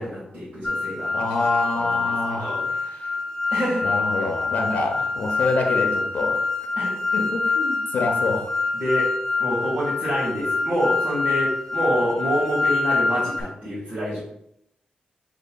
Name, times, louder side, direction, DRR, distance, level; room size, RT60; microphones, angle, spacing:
voice 1, 0.0-1.4 1.7-2.7 3.5-3.8 6.8-6.9 8.8-9.1 9.4-14.2, equal, 75° right, -9 dB, 1.6 m, -27 dB
sound 1, 0.6-13.4, left 3 dB, 20° left, 0.6 m, -25 dB
voice 2, 1.1-2.5 2.8-3.2 3.8-6.4 7.1-8.4, left 3 dB, 90° left, 3 dB, 0.6 m, -26 dB
6.5 x 2.7 x 2.2 m, 0.77 s
cardioid pair, 55°, 3 cm